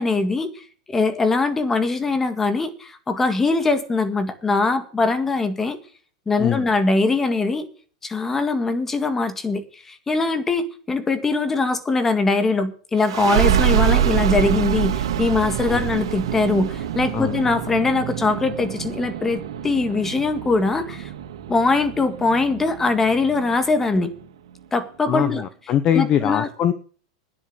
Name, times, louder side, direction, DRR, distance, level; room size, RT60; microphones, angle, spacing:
voice 1, 0.0-5.8 6.3-7.7 8.0-21.1 21.5-24.1 24.7-25.4 25.9-26.5, left 3 dB, 10° left, 9 dB, 1.8 m, -22 dB
sound 1, 13.0-24.2, right 10 dB, 90° right, 2.5 m, -25 dB
voice 2, 25.1-26.7, left 10 dB, 30° left, 12 dB, 0.9 m, -22 dB
11.5 x 10.0 x 6.3 m, 0.43 s
supercardioid pair, 155°, 3 cm